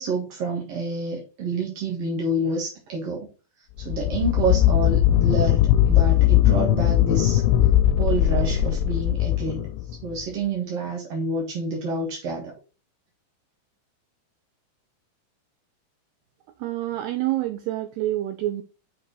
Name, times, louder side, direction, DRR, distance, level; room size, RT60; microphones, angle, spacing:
voice 1, 0.0-3.3 3.8-5.6 5.9-7.4 8.0-9.7 10.0-12.5, right 2 dB, 60° right, 1.6 m, -28 dB
sound 1, 3.8-10.2, left 12 dB, 90° left, 3.0 m, -19 dB
voice 2, 16.6-18.6, right 15 dB, 90° right, 2.3 m, -27 dB
7.0 x 5.5 x 3.9 m
omnidirectional pair, 5.3 m